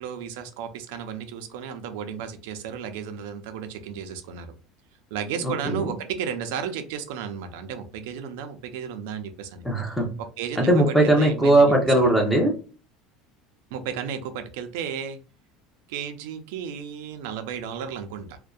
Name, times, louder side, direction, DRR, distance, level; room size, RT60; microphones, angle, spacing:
voice 1, 0.0-4.5 5.1-9.6 10.2-11.7 13.7-15.2 15.9-18.4, right 7 dB, 85° right, 8 dB, 0.4 m, -33 dB
voice 2, 5.4-5.9 9.6-10.1 10.6-12.5, right 1 dB, 5° left, 0 dB, 0.7 m, -19 dB
2.6 x 2.1 x 2.3 m, 0.37 s
cardioid pair, 150°, 0 cm